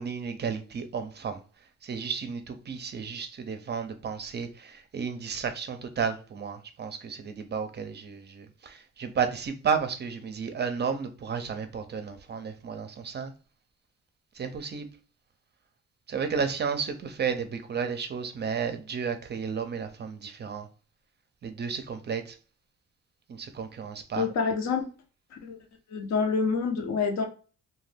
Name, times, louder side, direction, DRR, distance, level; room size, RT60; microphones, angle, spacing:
voice 1, 0.0-1.4 1.8-13.3 14.4-14.9 16.1-20.7 21.4-22.4 23.3-24.3, right 6 dB, 35° right, 0.5 m, -32 dB
voice 2, 24.2-24.8 25.3-25.6 25.9-27.3, left 5 dB, 65° left, 0.7 m, -27 dB
2.6 x 2.2 x 3.3 m
cardioid pair, 90°, 30 cm